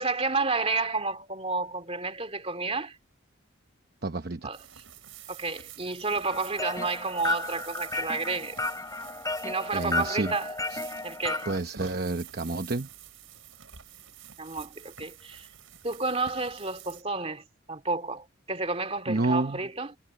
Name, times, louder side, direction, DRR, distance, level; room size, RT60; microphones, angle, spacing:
voice 1, 0.0-3.0 4.4-4.6 5.3-8.6 9.4-10.5 11.0-11.5 14.4-15.5 15.8-20.0, right 3 dB, 30° right, 2.4 m, -31 dB
voice 2, 4.0-4.5 9.7-10.3 10.7-10.8 11.5-12.9 19.1-19.6, right 2 dB, 50° right, 0.9 m, -29 dB
Donkeys eating, 4.5-17.0, right 9 dB, 75° right, 5.5 m, -48 dB
sound 1, 6.3-11.6, left 2 dB, 15° left, 5.9 m, -33 dB
head